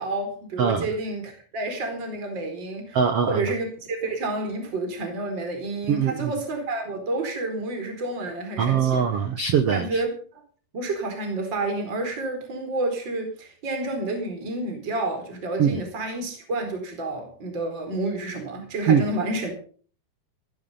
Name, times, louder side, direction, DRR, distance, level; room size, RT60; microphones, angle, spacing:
voice 1, 0.0-3.0 3.3-9.0 9.7-10.4 10.7-19.5, right 2 dB, 30° right, 4 dB, 4.8 m, -29 dB
voice 2, 2.9-3.5 5.9-6.3 8.6-10.0 15.6-15.8 18.9-19.0, right 7 dB, 75° right, 8 dB, 1.3 m, -22 dB
18.0 x 11.0 x 5.6 m, 0.44 s
omnidirectional pair, 4.6 m